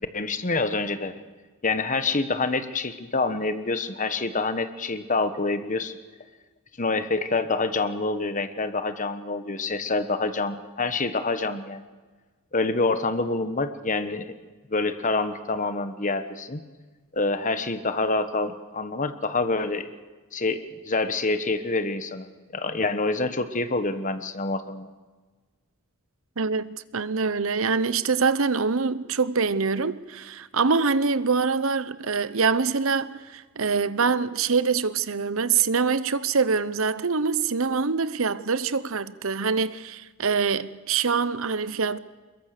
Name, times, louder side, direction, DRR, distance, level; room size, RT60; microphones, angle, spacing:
voice 1, 0.1-1.1 1.6-5.9 6.8-11.8 12.5-14.3 14.7-16.6 17.1-19.9 20.3-22.3 22.5-24.9, left 3 dB, 35° left, 1.3 m, -27 dB
voice 2, 26.4-42.0, right 5 dB, 65° right, 0.8 m, -24 dB
23.0 x 21.5 x 6.7 m
head